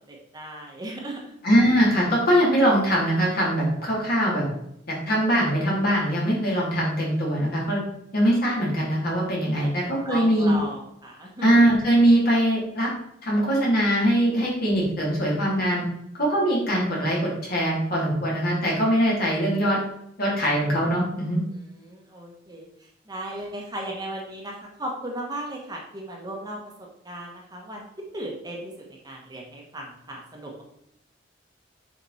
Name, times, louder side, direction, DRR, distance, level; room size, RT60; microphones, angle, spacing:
voice 1, 0.1-1.2 9.6-11.5 21.9-22.7 23.1-24.5 24.8-26.6 27.0-27.8 28.1-28.7 29.0-30.6, right 1 dB, 20° right, -1 dB, 1.3 m, -36 dB
voice 2, 1.4-4.4 4.9-7.8 8.1-10.5 11.4-12.9 13.2-15.8 16.2-19.8 20.2-21.4, equal, 55° left, -5 dB, 3.0 m, -22 dB
7.4 x 5.1 x 4.2 m, 0.77 s
head